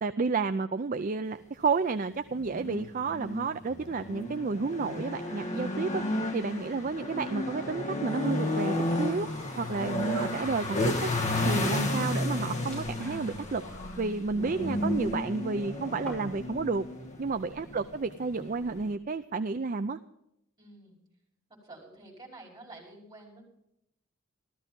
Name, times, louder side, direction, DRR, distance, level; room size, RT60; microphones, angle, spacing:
voice 1, 0.0-6.0 6.3-9.3 9.6-11.1 11.4-13.6 14.0-16.9 17.2-20.0, right 4 dB, 40° right, 10 dB, 0.4 m, -31 dB
sound 1, 2.3-18.9, left 1 dB, 35° left, 1.6 m, -33 dB
sound 2, 7.9-13.2 13.5-14.3 14.6-15.5, left 2 dB, 60° left, 1.8 m, -48 dB
sound 3, 7.9-16.5, equal, 5° left, 6.8 m, -53 dB
voice 2, 17.6-18.1 20.6-21.0 21.5-23.5, right 2 dB, 20° right, -2 dB, 5.6 m, -50 dB
14.5 x 13.5 x 5.3 m, 0.81 s
head